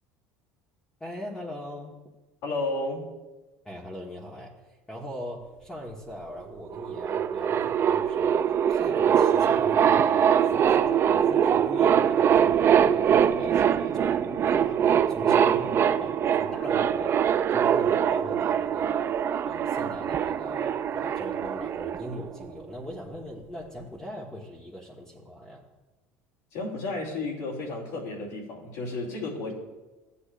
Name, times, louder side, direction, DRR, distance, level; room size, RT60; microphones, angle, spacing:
voice 1, 1.0-2.0 3.6-19.2 19.4-25.7, left 1 dB, 10° left, -4 dB, 1.4 m, -40 dB
voice 2, 2.4-3.1 26.5-29.5, left 2 dB, 70° left, -5 dB, 2.7 m, -32 dB
sound 1, 6.4-6.5 6.7-22.6, right 8 dB, 40° right, 0.4 m, -23 dB
14.5 x 8.5 x 2.5 m, 1.2 s
hypercardioid pair, 80°, 6 cm